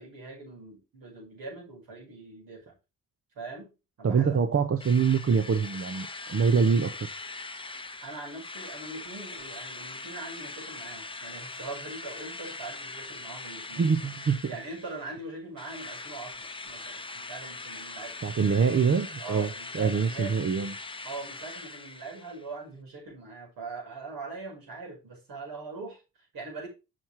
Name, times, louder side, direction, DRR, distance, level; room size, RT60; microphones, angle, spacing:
voice 1, 0.0-2.7 3.3-3.7 4.0-4.4 8.0-14.1 14.5-18.2 19.2-20.4 21.0-26.7, right 3 dB, 75° right, -3 dB, 5.3 m, -42 dB
voice 2, 4.0-7.1 13.8-14.5 18.2-20.7, right 6 dB, 40° right, 8 dB, 0.9 m, -25 dB
Drill, 4.8-15.2 15.6-22.5, left 3 dB, 15° left, 0.8 m, -41 dB
6.2 x 5.9 x 4.5 m, 0.29 s
supercardioid pair, 60°, 35 cm